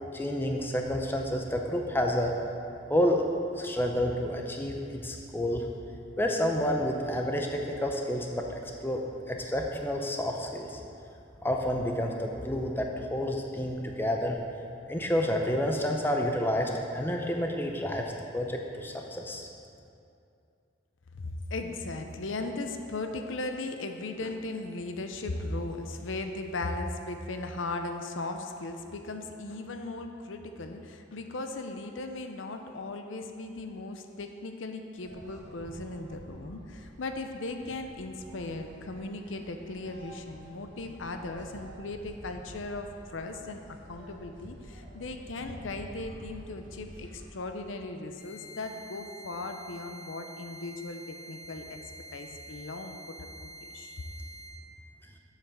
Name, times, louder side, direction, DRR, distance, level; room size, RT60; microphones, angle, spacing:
voice 1, 0.1-2.3 2.9-3.2 3.6-5.7 6.2-9.0 9.3-10.8 11.4-14.4 14.9-18.0 18.3-19.5, equal, 10° left, 2 dB, 0.6 m, -29 dB
voice 2, 21.1-43.6 43.9-51.8 52.1-53.2 53.4-53.9, left 2 dB, 90° left, 6 dB, 0.7 m, -37 dB
sound 1, 34.9-47.3, right 1 dB, 80° right, 1.5 m, -49 dB
sound 2, 48.2-54.5, right 1 dB, 55° left, 2.4 m, -47 dB
7.3 x 5.8 x 6.7 m, 2.6 s
head